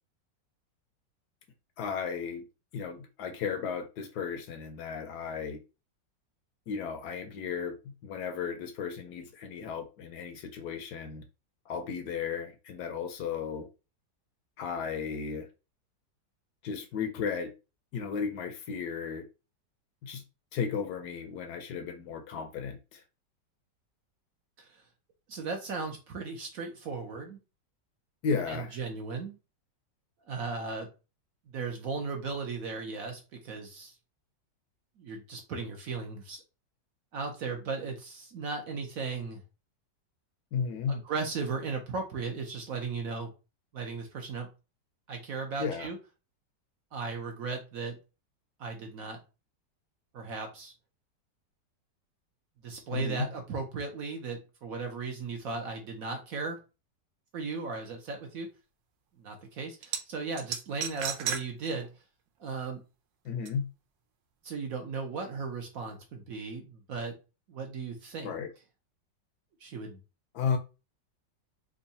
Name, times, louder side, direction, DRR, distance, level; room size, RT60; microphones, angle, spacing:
voice 1, 1.8-2.4 2.7-5.6 6.7-11.2 11.7-13.7 14.6-15.5 16.6-17.5 17.9-19.2 20.0-20.2 20.5-23.0 28.2-28.8 40.5-41.0 45.6-45.9 52.9-53.3 63.2-63.7 68.2-68.5 70.3-70.6, left 6 dB, 70° left, 1.1 m, -34 dB
voice 2, 25.3-27.4 28.5-29.3 30.3-30.9 31.5-33.9 35.0-36.4 37.1-39.4 40.9-43.3 43.7-44.5 45.1-46.0 46.9-48.0 48.6-49.2 50.1-50.7 52.6-56.6 57.3-58.5 59.2-61.9 62.4-62.8 64.4-67.1 67.5-68.3 69.6-70.0, right 4 dB, 65° right, 1.0 m, -36 dB
sound 1, 59.8-60.0 60.4-61.4 61.8-61.9 63.5-63.6, right 8 dB, 85° right, 1.3 m, -33 dB
3.6 x 2.3 x 4.0 m
omnidirectional pair, 1.9 m